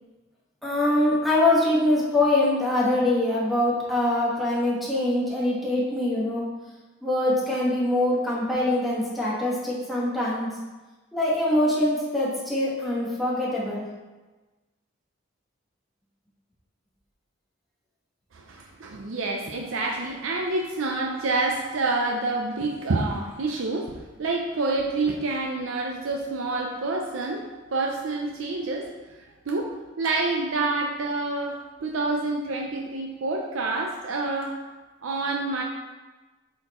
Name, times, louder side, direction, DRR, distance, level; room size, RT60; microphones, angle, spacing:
voice 1, 0.6-6.4 7.0-10.5 11.1-13.9, left 1 dB, ahead, -7 dB, 1.5 m, -23 dB
voice 2, 18.3-23.9 24.2-28.9 29.5-34.6 35.0-35.6, right 3 dB, 85° right, 1 dB, 0.6 m, -28 dB
7.4 x 4.2 x 3.0 m, 1.2 s
head